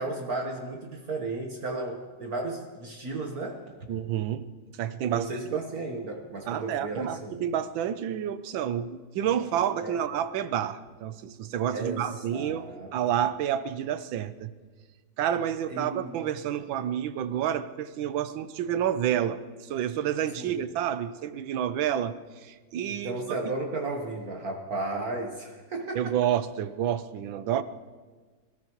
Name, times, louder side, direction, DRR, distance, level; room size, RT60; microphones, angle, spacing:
voice 1, 0.0-3.7 5.1-7.4 9.8-10.0 11.7-12.9 15.7-16.2 20.3-20.6 22.9-26.2, right 2 dB, 55° right, 1 dB, 1.6 m, -34 dB
voice 2, 3.9-4.4 4.8-5.3 6.5-14.5 15.2-22.2 22.4-23.2 25.9-27.6, right 10 dB, 85° right, 13 dB, 1.5 m, -29 dB
25.0 x 14.0 x 3.0 m, 1.4 s
omnidirectional pair, 2.1 m